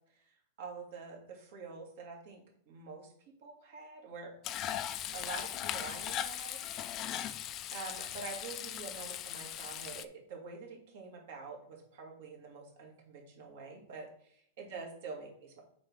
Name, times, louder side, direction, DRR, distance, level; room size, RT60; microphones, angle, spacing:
voice 1, 0.6-3.1 3.4-4.3 5.1-6.6 7.7-15.6, right 4 dB, 55° right, 0 dB, 2.7 m, -46 dB
Frying (food), 4.4-10.1, left 11 dB, 25° left, 0.4 m, -39 dB
7.1 x 4.5 x 4.9 m, 0.65 s
supercardioid pair, 165°, 0 cm